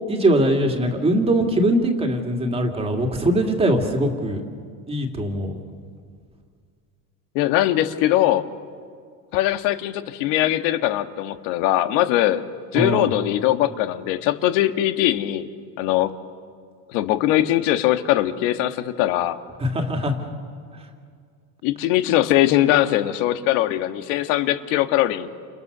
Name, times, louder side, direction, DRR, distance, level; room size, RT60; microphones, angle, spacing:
voice 1, 0.1-4.4 4.9-5.5 12.7-13.1 19.6-20.1, right 1 dB, 15° right, 3 dB, 2.4 m, -21 dB
voice 2, 7.3-8.5 9.3-12.4 12.7-15.5 15.8-16.1 16.9-19.4 21.6-25.3, left 14 dB, 70° left, 9 dB, 1.6 m, -21 dB
29.5 x 29.0 x 6.8 m, 2.1 s
cardioid pair, 165°, 41 cm